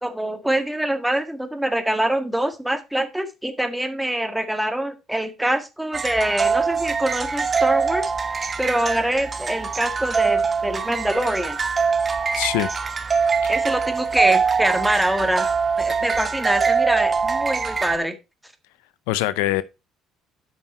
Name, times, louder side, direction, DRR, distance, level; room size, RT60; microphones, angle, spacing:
voice 1, 0.0-8.1 8.6-11.6 13.5-15.5 15.8-18.1, right 1 dB, 5° right, 1.7 m, -24 dB
sound 1, 5.9-18.0, right 5 dB, 35° right, 1.2 m, -23 dB
voice 2, 12.3-12.7 13.4-13.5 15.9-16.0 19.1-19.6, left 15 dB, 85° left, 0.5 m, -23 dB
8.8 x 6.0 x 4.3 m
supercardioid pair, 65°, 0 cm